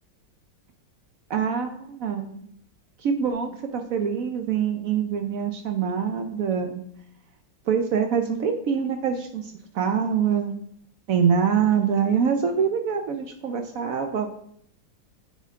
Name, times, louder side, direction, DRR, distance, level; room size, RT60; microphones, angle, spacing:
voice 1, 1.3-2.5 3.0-6.8 7.7-10.6 11.1-14.3, right 7 dB, 70° right, 6 dB, 0.8 m, -25 dB
9.1 x 4.2 x 3.6 m, 0.67 s
omnidirectional pair, 2.0 m